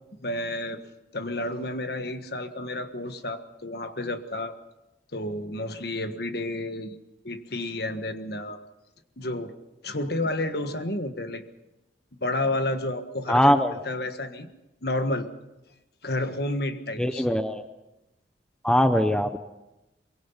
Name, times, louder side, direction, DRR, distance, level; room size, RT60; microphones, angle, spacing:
voice 1, 0.2-0.8 1.1-4.5 5.1-7.0 7.2-8.6 9.2-9.5 9.8-11.4 12.2-14.5 14.8-15.3 16.0-17.3, left 1 dB, 55° left, 8 dB, 1.5 m, -30 dB
voice 2, 13.3-13.7 17.0-17.6 18.6-19.4, equal, 5° left, 9 dB, 0.7 m, -21 dB
23.5 x 23.0 x 5.6 m, 0.96 s
head